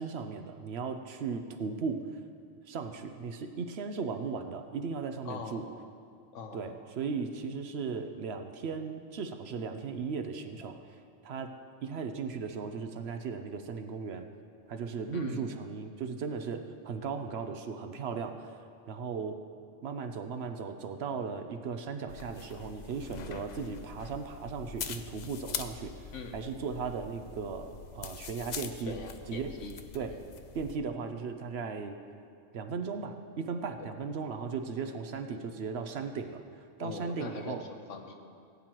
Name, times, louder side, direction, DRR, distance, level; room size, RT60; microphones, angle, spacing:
voice 1, 0.0-2.2 2.6-5.7 6.5-11.5 11.8-14.3 14.7-19.4 19.8-28.9 29.3-29.5 29.9-30.1 30.5-32.0 32.5-37.6, right 5 dB, 65° right, 7 dB, 0.9 m, -37 dB
voice 2, 5.2-5.7 6.3-6.7 15.1-15.5 26.1-26.4 28.9-29.8 30.1-30.2 33.8-33.9 36.8-38.1, left 4 dB, 80° left, 4 dB, 1.3 m, -42 dB
sound 1, 22.1-30.8, left 6 dB, 60° left, 0.4 m, -43 dB
18.0 x 9.2 x 3.0 m, 2.3 s
omnidirectional pair, 1.3 m